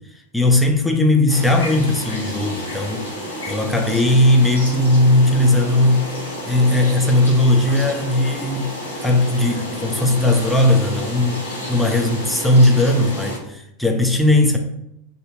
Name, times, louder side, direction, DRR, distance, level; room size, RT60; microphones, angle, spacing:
voice 1, 0.3-3.1 3.5-6.1 6.5-14.6, left 1 dB, 5° left, 0.4 m, -17 dB
sound 1, 1.3-13.4, equal, 70° left, 0.9 m, -30 dB
2.7 x 2.2 x 3.5 m
figure-of-eight pair, 90°, 0 cm